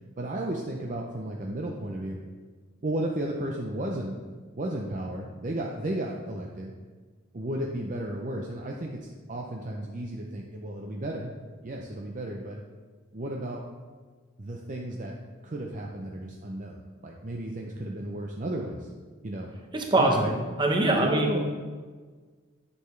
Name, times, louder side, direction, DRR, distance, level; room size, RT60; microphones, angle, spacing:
voice 1, 0.2-2.2 2.8-4.2 4.6-6.7 7.3-11.3 11.6-12.6 13.1-13.7 14.4-15.2 15.4-18.9 19.2-19.5 20.0-20.3 21.0-21.4, right 1 dB, 35° right, 0 dB, 0.6 m, -33 dB
voice 2, 19.7-21.4, right 2 dB, 20° right, 1 dB, 0.9 m, -24 dB
9.9 x 6.7 x 3.2 m, 1.5 s
head